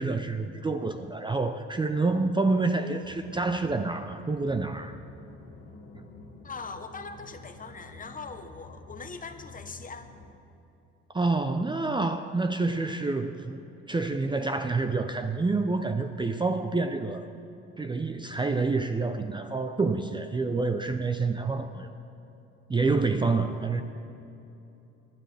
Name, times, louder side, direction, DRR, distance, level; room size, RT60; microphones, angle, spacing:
voice 1, 0.0-5.0 6.0-6.1 11.1-13.6 13.9-17.3 17.8-21.9 22.7-23.8, right 3 dB, 15° right, 7 dB, 0.5 m, -28 dB
sound 1, 3.0-10.3, left 2 dB, 55° left, 2.1 m, -49 dB
voice 2, 6.4-10.1, left 4 dB, 30° left, 8 dB, 0.9 m, -41 dB
19.5 x 11.0 x 3.4 m, 2.9 s
cardioid pair, 90°, 29 cm